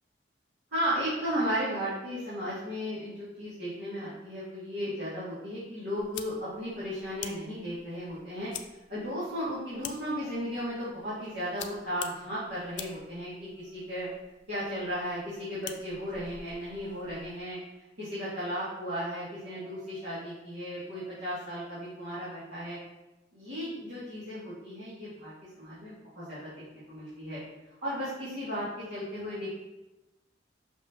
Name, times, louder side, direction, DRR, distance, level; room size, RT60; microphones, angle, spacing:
voice 1, 0.7-8.5 8.9-14.1 14.5-17.6 18.0-22.8 23.3-27.4 27.8-29.5, equal, 75° right, -12 dB, 2.2 m, -35 dB
sound 1, 6.0-17.4, left 9 dB, 75° left, 0.5 m, -47 dB
6.0 x 5.6 x 2.9 m, 1.0 s
head